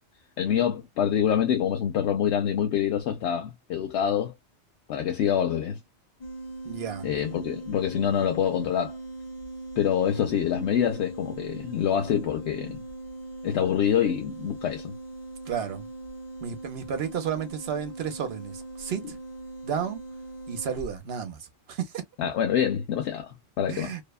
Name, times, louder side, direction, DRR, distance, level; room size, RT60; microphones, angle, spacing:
voice 1, 0.4-4.3 4.9-5.8 7.0-9.0 9.8-12.8 13.4-14.9 22.2-23.9, left 9 dB, 75° left, 0.9 m, -26 dB
sound 1, 6.2-21.0, right 2 dB, 40° left, 1.0 m, -40 dB
voice 2, 6.6-7.1 15.4-15.9 16.4-19.0 19.6-20.0 20.5-21.4 21.7-22.0 23.7-24.0, right 7 dB, 65° right, 0.9 m, -32 dB
2.7 x 2.2 x 2.2 m
omnidirectional pair, 1.2 m